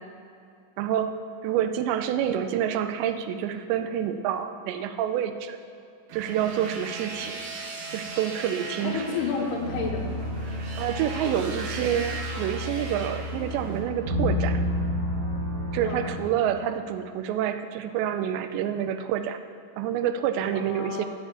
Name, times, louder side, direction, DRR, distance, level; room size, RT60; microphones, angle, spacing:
voice 1, 0.8-1.1 1.4-5.6 6.1-7.4 7.9-9.0 10.8-14.6 15.7-19.4 19.8-21.1, right 9 dB, 85° right, 9 dB, 2.8 m, -28 dB
sound 1, 6.1-13.8, right 4 dB, 60° right, 2.6 m, -38 dB
voice 2, 8.8-10.2 11.1-11.4 15.8-16.1 20.5-21.1, left 5 dB, 75° left, 1 dB, 2.7 m, -31 dB
sound 2, 9.6-16.2, left 1 dB, 35° right, 2.0 m, -31 dB
8.6 x 7.3 x 8.2 m, 2.5 s
omnidirectional pair, 5.1 m